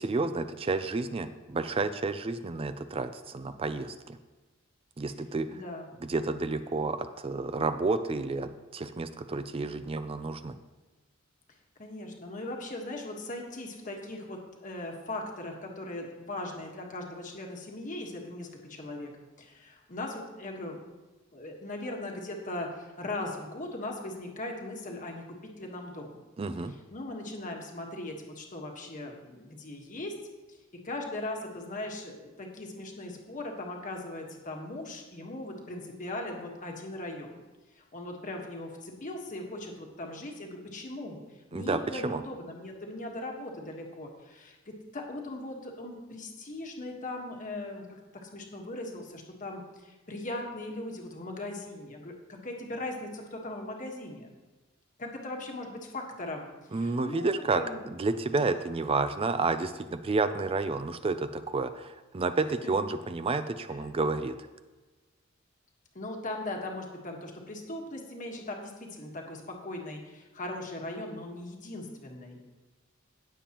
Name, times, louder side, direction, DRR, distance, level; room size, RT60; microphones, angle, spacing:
voice 1, 0.0-4.2 5.0-5.5 6.0-10.6 26.4-26.7 41.5-42.2 56.7-57.6 58.0-64.4, right 3 dB, 25° right, 10 dB, 0.4 m, -30 dB
voice 2, 5.5-5.9 11.8-19.1 19.4-20.8 21.3-25.2 25.6-26.2 26.7-30.1 30.5-30.6 30.8-37.3 37.7-41.2 41.5-54.3 55.0-57.9 62.6-62.7 63.7-63.9 65.9-72.4, left 2 dB, 40° left, 1 dB, 1.4 m, -39 dB
17.0 x 7.1 x 3.0 m, 1.2 s
head